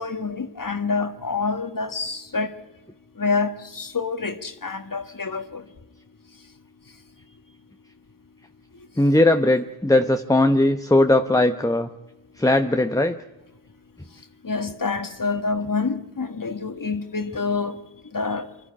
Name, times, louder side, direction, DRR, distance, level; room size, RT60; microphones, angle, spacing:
voice 1, 0.0-2.5 3.2-5.6 14.4-17.8 18.1-18.5, left 4 dB, 55° left, 1.6 m, -27 dB
voice 2, 9.0-11.9 12.4-13.2, left 1 dB, 10° left, 0.9 m, -19 dB
25.0 x 13.0 x 9.9 m
wide cardioid pair, 65°, 40 cm